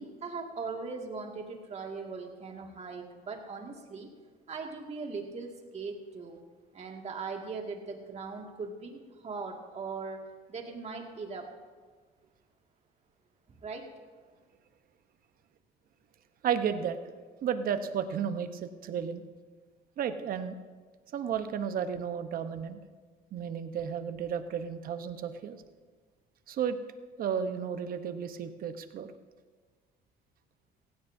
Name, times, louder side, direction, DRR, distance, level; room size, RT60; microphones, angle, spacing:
voice 1, 0.0-4.1 4.5-6.4 6.7-10.2 10.5-11.5 13.6-13.9, right 4 dB, 40° right, 2 dB, 2.1 m, -39 dB
voice 2, 16.4-17.0 17.4-19.2 20.0-20.6 21.1-22.8 23.3-25.6 26.5-26.8 27.2-29.1, right 8 dB, 60° right, 9 dB, 1.0 m, -33 dB
16.5 x 16.0 x 2.7 m, 1.5 s
cardioid pair, 110°, 17 cm